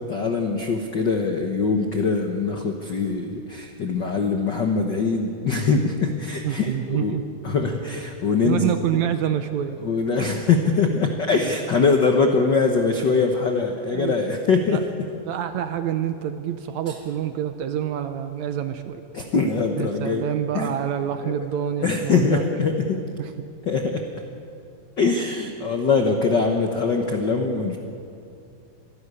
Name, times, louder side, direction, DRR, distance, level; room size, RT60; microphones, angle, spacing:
voice 1, 0.1-7.2 7.4-8.7 9.8-14.8 16.9-17.0 19.1-20.2 20.5-20.7 21.2-21.4 21.8-23.0 23.7-24.0 25.0-27.8, left 4 dB, 70° left, 4 dB, 1.0 m, -22 dB
voice 2, 6.4-7.2 8.4-9.8 13.9-14.2 14.7-14.8 15.3-19.0 19.8-22.4 23.2-23.5, right 10 dB, 75° right, 9 dB, 1.9 m, -27 dB
26.0 x 12.0 x 9.8 m, 2.6 s
omnidirectional pair, 3.8 m